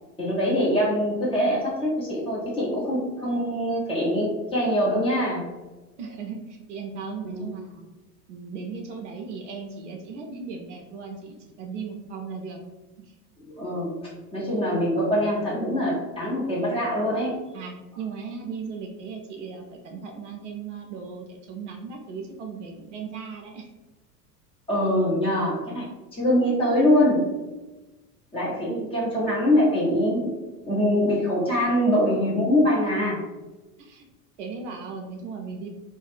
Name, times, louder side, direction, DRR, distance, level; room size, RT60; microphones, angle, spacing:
voice 1, 0.2-5.5 7.3-7.4 13.4-14.0 14.3-17.4 24.7-27.3 28.3-30.4 30.6-33.2, equal, 10° left, -6 dB, 0.5 m, -23 dB
voice 2, 6.0-7.9 8.3-12.6 13.0-13.1 17.5-23.7 28.7-28.9 33.8-34.1 34.4-35.7, right 5 dB, 50° right, 2 dB, 0.5 m, -37 dB
2.3 x 2.0 x 3.3 m, 1.1 s
figure-of-eight pair, 80°, 48 cm